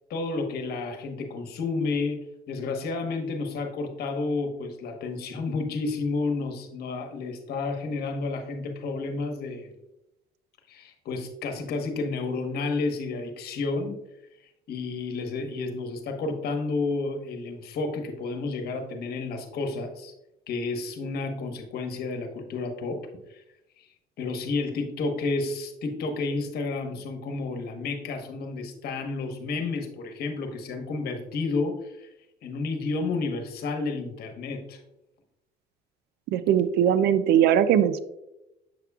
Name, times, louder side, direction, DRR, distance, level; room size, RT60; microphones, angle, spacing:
voice 1, 0.1-9.7 10.7-14.0 14.7-20.1 20.5-23.0 23.3-23.4 23.8-23.9 24.2-32.1 32.4-34.8, left 3 dB, 70° left, 5 dB, 1.2 m, -31 dB
voice 2, 36.3-38.0, right 9 dB, 75° right, 13 dB, 0.5 m, -20 dB
7.6 x 6.7 x 2.3 m, 0.90 s
cardioid pair, 110°, 17 cm